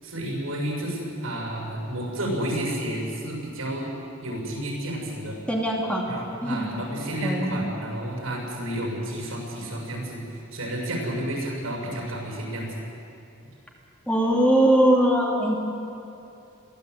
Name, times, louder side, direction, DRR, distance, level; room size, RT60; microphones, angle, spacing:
voice 1, 0.0-3.9 4.2-5.4 6.1-12.7, right 1 dB, 85° right, -1 dB, 7.0 m, -31 dB
voice 2, 5.5-6.1 6.4-6.7 7.2-7.7 14.1-15.6, right 1 dB, 5° left, -2 dB, 2.5 m, -21 dB
22.5 x 16.0 x 8.3 m, 2.7 s
head